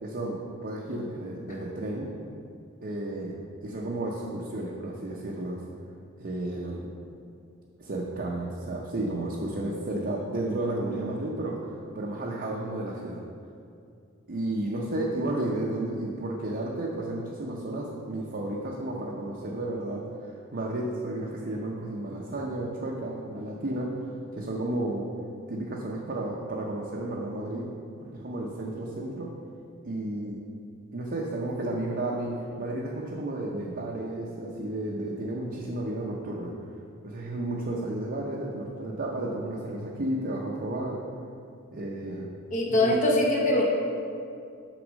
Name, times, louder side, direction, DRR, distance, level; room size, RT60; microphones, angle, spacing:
voice 1, 0.0-2.1 2.8-5.6 6.2-6.9 7.8-11.6 11.9-13.2 14.3-25.0 25.5-27.7 28.0-29.3 29.8-30.4 30.9-36.5 37.0-41.0 41.7-42.3 42.7-43.0, right 1 dB, 50° right, -3 dB, 0.7 m, -32 dB
voice 2, 42.5-43.6, left 1 dB, 40° left, -2 dB, 0.9 m, -22 dB
6.2 x 4.2 x 6.2 m, 2.4 s
head